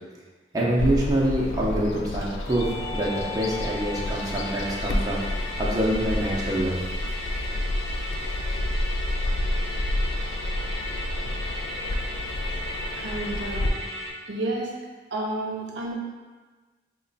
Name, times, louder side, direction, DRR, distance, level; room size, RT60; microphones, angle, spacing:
voice 1, 0.5-5.2 5.6-6.8, right 1 dB, 20° right, -6 dB, 0.5 m, -25 dB
Bird vocalization bird call bird song, 0.8-13.7, left 1 dB, 85° left, 0.3 m, -30 dB
Musical instrument, 2.4-14.1, left 1 dB, 60° left, 0.9 m, -36 dB
voice 2, 13.0-13.8 14.3-14.7 15.1-15.9, right 2 dB, 85° right, -1 dB, 0.6 m, -30 dB
3.1 x 2.2 x 3.9 m, 1.3 s
head